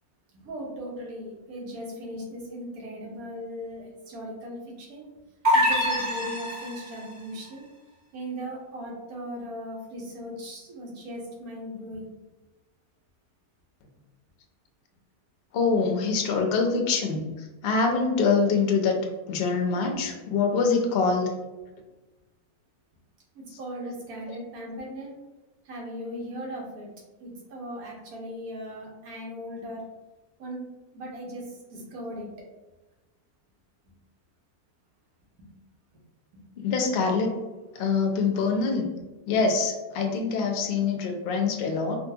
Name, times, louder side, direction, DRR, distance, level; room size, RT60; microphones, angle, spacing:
voice 1, 0.3-5.0 5.5-7.6 8.1-12.1 19.9-20.0 23.3-25.1 25.7-26.9 27.2-29.8 30.4-30.6 30.9-32.3 35.4-35.5, equal, 80° right, -2 dB, 1.4 m, -38 dB
sound 1, 5.4-7.1, equal, 35° right, 0.4 m, -24 dB
voice 2, 15.5-17.2 17.6-18.9 19.3-21.3 36.6-37.3 37.8-38.9 39.3-42.0, left 4 dB, 60° left, 2 dB, 0.6 m, -24 dB
3.6 x 2.3 x 2.7 m, 1.1 s
omnidirectional pair, 1.6 m